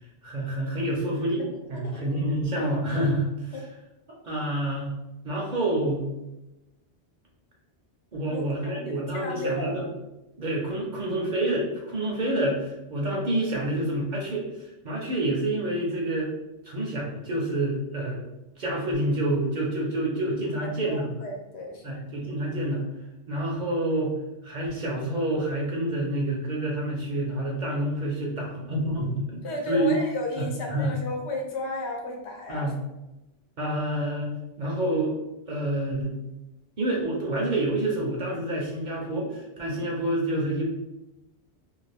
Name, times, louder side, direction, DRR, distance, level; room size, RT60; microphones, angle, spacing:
voice 1, 0.2-1.4 1.7-3.6 4.2-4.9 5.2-6.1 8.1-9.8 10.4-16.3 16.6-18.2 18.6-21.2 21.8-22.8 23.3-24.2 24.4-30.0 30.4-31.0 32.5-32.7 33.6-35.2 35.5-36.2 36.8-40.7, right 1 dB, 50° right, -3 dB, 0.6 m, -28 dB
voice 2, 1.7-2.1 3.5-3.6 8.3-9.9 20.6-22.0 29.4-32.8, left 2 dB, 75° left, 1 dB, 0.9 m, -34 dB
2.5 x 2.3 x 3.3 m, 0.97 s
omnidirectional pair, 1.1 m